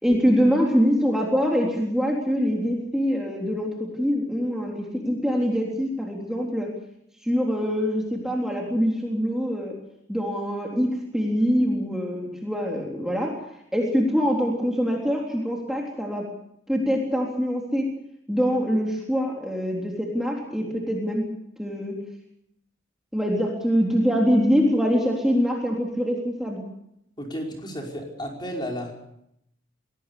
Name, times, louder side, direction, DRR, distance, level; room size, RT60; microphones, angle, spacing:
voice 1, 0.0-6.7 7.2-9.7 10.1-13.4 13.7-16.2 16.7-17.9 18.3-21.2 21.6-22.0 23.1-26.6, equal, 5° right, -1 dB, 3.7 m, -24 dB
voice 2, 27.2-28.9, equal, 25° left, 0 dB, 5.4 m, -32 dB
25.0 x 18.5 x 6.9 m, 0.76 s
head